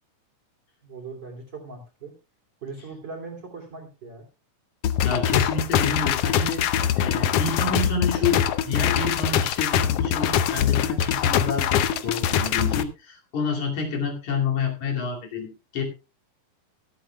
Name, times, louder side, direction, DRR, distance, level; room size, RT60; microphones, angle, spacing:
voice 1, 0.8-2.1 2.6-4.2, right 4 dB, 35° right, 0 dB, 3.3 m, -39 dB
sound 1, 4.8-12.8, left 9 dB, 80° left, 1.3 m, -23 dB
voice 2, 5.0-6.6 7.0-15.8, left 4 dB, 65° left, 1 dB, 3.9 m, -29 dB
23.5 x 8.8 x 2.3 m, 0.29 s
omnidirectional pair, 3.7 m